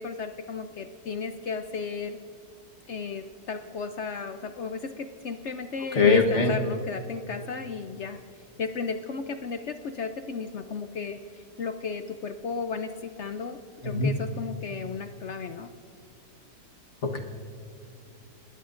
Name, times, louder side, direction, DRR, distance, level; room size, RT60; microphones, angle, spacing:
voice 1, 0.0-2.2 2.9-8.2 8.6-13.6 13.8-15.7, left 5 dB, 65° left, 8 dB, 0.7 m, -34 dB
voice 2, 5.9-6.5 13.8-14.1 17.0-17.2, left 4 dB, 45° left, 2 dB, 1.5 m, -21 dB
29.5 x 19.0 x 2.5 m, 2.4 s
omnidirectional pair, 1.8 m